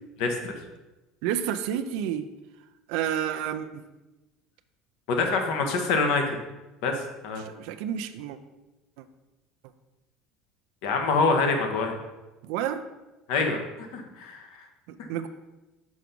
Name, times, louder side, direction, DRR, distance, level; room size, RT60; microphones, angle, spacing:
voice 1, 0.2-0.5 5.1-6.4 6.8-7.4 10.8-11.9 13.3-13.6 13.9-14.7, left 4 dB, 75° left, 4 dB, 1.2 m, -25 dB
voice 2, 1.2-2.3 2.9-3.8 7.4-8.4 12.4-12.8 14.9-15.3, right 10 dB, 75° right, 9 dB, 0.5 m, -30 dB
6.2 x 4.6 x 5.2 m, 1.1 s
supercardioid pair, 90°, 0 cm